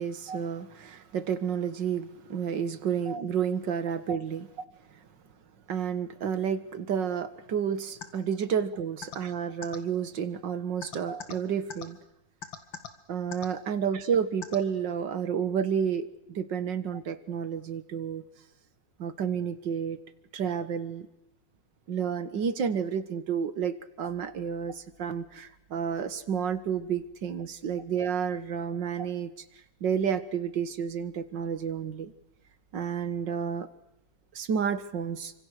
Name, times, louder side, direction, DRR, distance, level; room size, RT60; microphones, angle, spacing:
voice 1, 0.0-4.5 5.7-12.0 13.1-18.2 19.0-20.0 20.3-21.1 21.9-29.3 29.8-32.1 32.7-33.7 34.3-35.3, right 7 dB, 70° right, 12 dB, 2.1 m, -30 dB
sound 1, 8.0-8.1 9.0-9.2 9.6-9.8 10.8-11.3 11.7-11.8 12.4-12.9 13.3-13.5 14.4-14.6, left 7 dB, 80° left, 2.7 m, -38 dB
28.5 x 26.0 x 6.6 m, 0.86 s
omnidirectional pair, 2.1 m